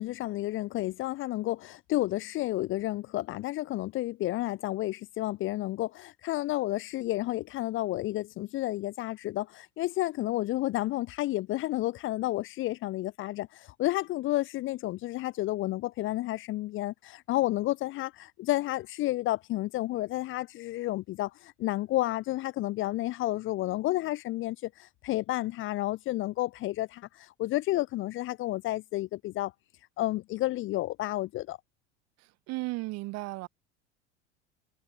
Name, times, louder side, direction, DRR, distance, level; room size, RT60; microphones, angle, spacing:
voice 1, 0.0-29.5 30.0-31.6, left 16 dB, 35° left, 0.6 m, -31 dB
voice 2, 32.5-33.5, right 22 dB, 45° right, 1.1 m, -34 dB
hypercardioid pair, 80°, 35 cm